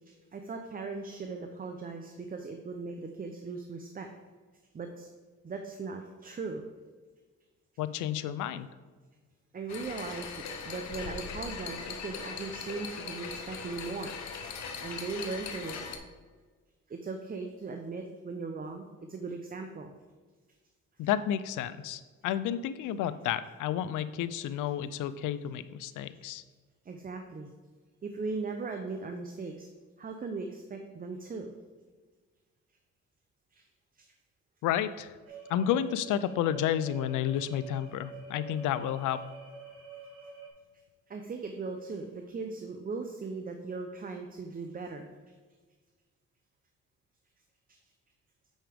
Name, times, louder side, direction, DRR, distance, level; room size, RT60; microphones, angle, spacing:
voice 1, 0.1-4.1 4.7-5.1 5.4-6.6 9.5-14.1 14.8-15.8 16.9-19.9 26.2-26.3 26.8-27.5 28.0-29.7 30.0-31.5 33.5-33.6 33.9-34.1 35.3-35.4 41.1-45.1 47.7-47.8, right 4 dB, 30° right, 5 dB, 0.6 m, -38 dB
voice 2, 7.8-8.7 21.0-26.4 34.6-35.1 35.5-39.2, left 10 dB, 85° left, 14 dB, 0.5 m, -31 dB
sound 1, 9.7-16.0, left 5 dB, 65° left, 0.9 m, -40 dB
sound 2, 35.3-40.5, right 5 dB, 50° right, 1.9 m, -47 dB
8.8 x 5.0 x 3.4 m, 1.4 s
cardioid pair, 90°, 30 cm